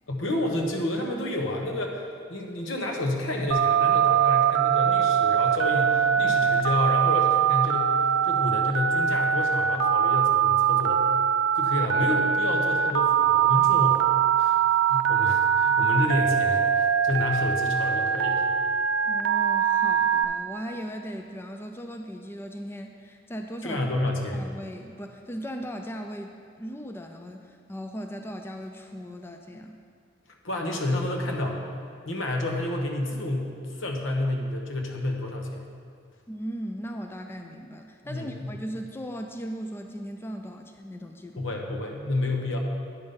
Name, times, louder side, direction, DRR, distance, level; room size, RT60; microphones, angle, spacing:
voice 1, 0.1-2.0 2.3-8.0 8.2-11.0 11.6-14.0 14.4-18.5 23.6-24.5 30.4-31.6 32.1-33.5 33.8-35.7 38.0-38.5 41.3-42.6, left 1 dB, 75° left, 1 dB, 1.1 m, -29 dB
Telephone, 3.5-20.3, right 8 dB, 75° right, 0.5 m, -22 dB
voice 2, 19.1-29.8 36.3-41.5, equal, 10° left, 4 dB, 0.3 m, -38 dB
9.6 x 5.5 x 5.2 m, 2.3 s
head